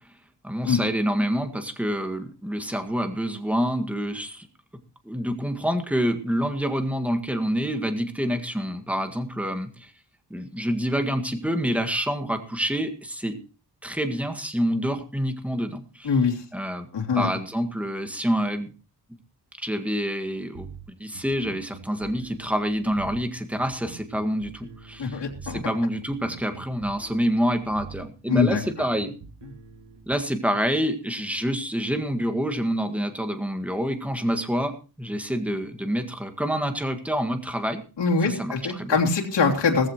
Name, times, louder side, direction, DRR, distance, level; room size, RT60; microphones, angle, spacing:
voice 1, 0.4-4.5 5.1-9.9 10.3-13.4 13.8-16.1 16.5-16.9 17.1-18.7 19.6-20.7 21.0-29.1 30.1-37.8 38.2-39.0, equal, 5° right, 7 dB, 1.8 m, -27 dB
voice 2, 16.0-16.4 16.9-17.3 25.0-25.6 28.3-28.6 38.0-39.9, left 5 dB, 90° left, -1 dB, 3.0 m, -23 dB
sound 1, 20.5-30.1, right 5 dB, 90° right, 2.4 m, -45 dB
18.5 x 15.0 x 3.0 m, 0.34 s
wide cardioid pair, 145°, 41 cm